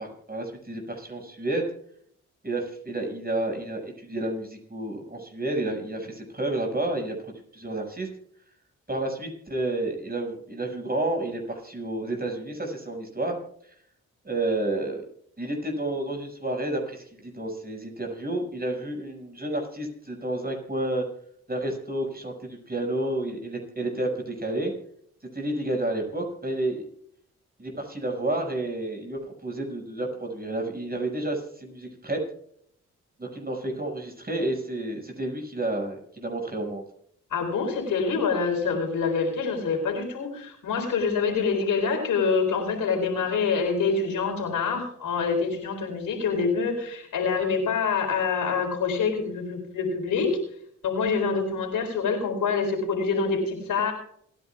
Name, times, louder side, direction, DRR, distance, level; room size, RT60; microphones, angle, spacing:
voice 1, 0.0-1.6 2.4-7.1 7.5-8.1 8.9-13.4 14.2-15.0 15.4-21.0 21.5-24.7 25.3-26.8 27.6-32.2 33.2-36.8, right 1 dB, 30° right, 1 dB, 6.1 m, -30 dB
voice 2, 37.3-50.4 50.8-53.9, left 5 dB, 80° left, 2 dB, 4.3 m, -26 dB
28.0 x 10.5 x 2.4 m, 0.65 s
supercardioid pair, 45°, 33 cm